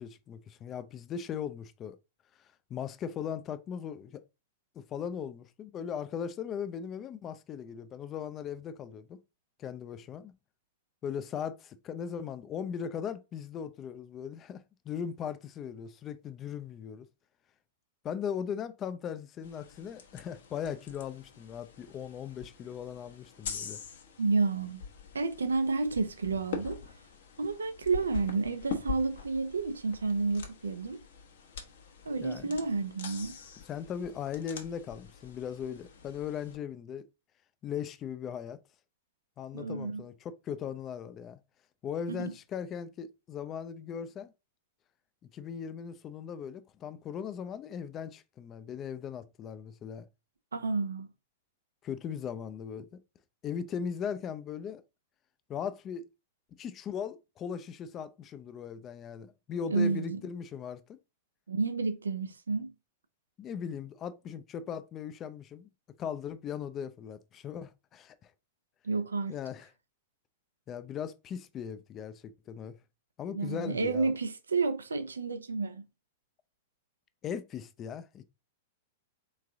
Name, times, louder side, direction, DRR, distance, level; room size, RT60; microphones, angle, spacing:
voice 1, 0.0-2.0 2.7-4.2 4.8-9.2 9.6-10.3 11.0-17.1 18.0-23.8 32.2-32.5 33.7-37.0 37.6-38.6 39.4-41.4 41.8-44.3 45.3-50.1 51.8-53.0 53.4-54.8 55.5-56.1 56.6-61.0 63.4-65.7 66.0-68.3 69.3-69.7 70.7-72.8 73.2-74.1 77.2-78.2, left 7 dB, 30° left, 0.5 m, -38 dB
sound 1, 19.4-36.6, left 6 dB, 65° left, 1.1 m, -44 dB
voice 2, 24.2-24.8 25.1-26.8 27.4-31.0 32.1-33.4 39.5-40.0 42.1-42.3 50.5-51.1 59.7-60.2 61.5-62.7 68.8-69.3 73.3-75.8, right 4 dB, 80° right, 0.6 m, -30 dB
3.7 x 3.2 x 3.5 m
figure-of-eight pair, 100°, 0 cm